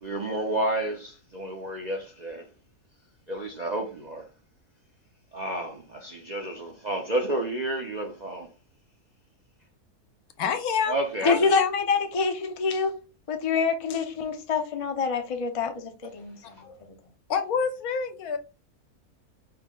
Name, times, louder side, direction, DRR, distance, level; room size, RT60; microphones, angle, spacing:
voice 1, 0.0-2.5 3.3-4.3 5.3-8.5 10.9-11.5 16.6-16.7, right 1 dB, 45° right, 0.5 m, -31 dB
voice 2, 10.4-10.9 11.2-11.7 17.3-18.4, left 6 dB, 75° left, 1.2 m, -27 dB
voice 3, 11.2-12.9 13.3-16.7, left 5 dB, 40° left, 0.5 m, -26 dB
5.5 x 2.1 x 3.8 m
omnidirectional pair, 1.6 m